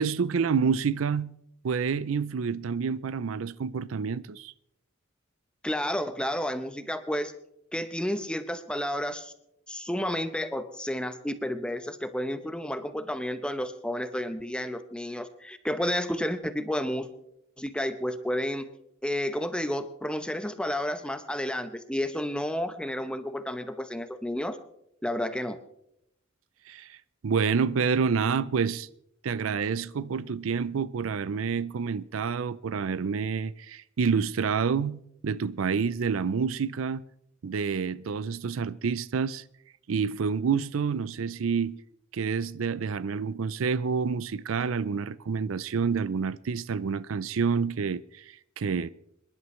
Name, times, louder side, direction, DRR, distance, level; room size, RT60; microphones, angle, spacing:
voice 1, 0.0-1.3 1.6-4.5 26.7-27.0 27.2-28.9 29.2-37.0 37.4-39.4 39.9-41.8 42.1-48.9, right 5 dB, 80° right, 0.5 m, -28 dB
voice 2, 5.6-7.3 7.7-9.3 9.7-17.1 17.6-18.7 19.0-24.6 25.0-25.6, left 1 dB, 5° left, 0.8 m, -31 dB
26.5 x 11.0 x 3.2 m
head